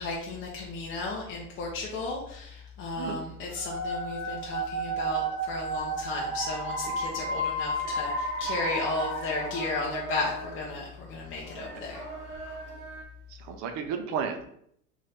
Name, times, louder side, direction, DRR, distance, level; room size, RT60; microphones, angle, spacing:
voice 1, 0.0-12.0 12.3-12.6, left 3 dB, 30° left, -2 dB, 0.6 m, -34 dB
sound 1, 3.6-10.4, right 1 dB, 80° right, 1.1 m, -32 dB
voice 2, 6.9-7.3 13.3-14.5, right 6 dB, 45° right, 6 dB, 0.6 m, -34 dB
sound 2, 7.8-13.0, right 2 dB, 60° right, 1.0 m, -41 dB
2.8 x 2.7 x 3.4 m, 0.69 s
hypercardioid pair, 95°, 41 cm